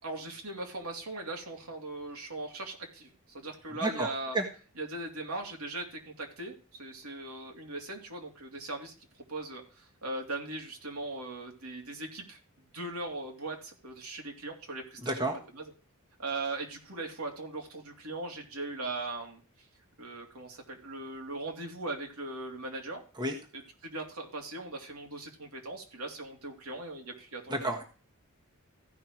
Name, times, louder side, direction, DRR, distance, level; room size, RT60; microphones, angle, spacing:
voice 1, 0.0-3.1 3.3-4.4 4.8-8.9 9.3-12.4 12.7-15.3 15.5-15.6 16.2-19.4 20.0-23.0 23.5-27.7, right 2 dB, 75° right, 2 dB, 3.1 m, -39 dB
voice 2, 15.0-15.3 23.2-23.4 27.5-27.8, right 1 dB, 20° right, 2 dB, 1.5 m, -30 dB
15.0 x 5.8 x 4.5 m, 0.37 s
head